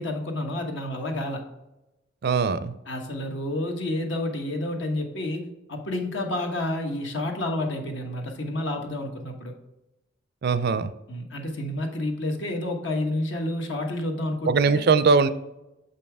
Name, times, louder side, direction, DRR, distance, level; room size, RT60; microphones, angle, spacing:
voice 1, 0.0-1.4 2.9-5.4 5.7-9.5 11.1-14.9, left 1 dB, 70° left, 3 dB, 1.2 m, -29 dB
voice 2, 2.2-2.7 10.4-10.9 14.5-15.3, right 4 dB, 55° right, 13 dB, 0.4 m, -21 dB
6.7 x 5.4 x 3.4 m, 0.96 s
head